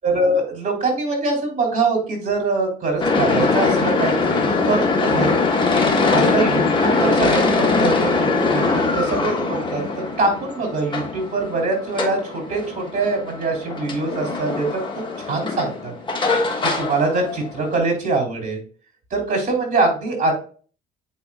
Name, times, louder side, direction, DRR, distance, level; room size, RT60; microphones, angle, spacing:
voice 1, 0.0-5.3 6.1-14.8 15.3-15.9 16.8-18.6 19.1-20.3, right 3 dB, 45° right, 0 dB, 3.3 m, -23 dB
Industrial lift ride-along, 3.0-17.8, left 3 dB, 30° left, 1.3 m, -22 dB
8.1 x 4.9 x 2.4 m, 0.41 s
cardioid pair, 110°, 17 cm